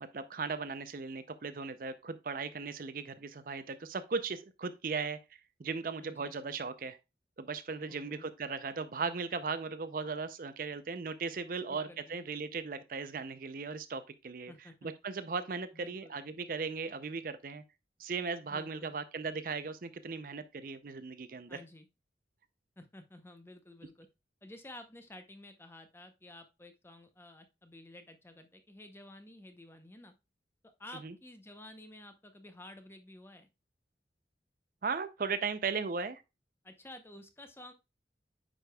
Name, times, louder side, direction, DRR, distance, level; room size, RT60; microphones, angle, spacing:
voice 1, 0.0-5.2 5.6-7.0 7.4-14.5 14.8-17.6 18.0-21.6 31.0-31.1 34.8-36.2, right 4 dB, 50° right, 0.5 m, -37 dB
voice 2, 6.0-6.3 7.9-8.3 11.7-12.2 14.5-14.9 15.7-16.1 18.5-19.0 21.5-21.9 22.8-24.1 24.4-30.1 30.6-33.5 36.6-37.7, left 1 dB, 15° left, 0.7 m, -52 dB
9.0 x 5.1 x 2.3 m
head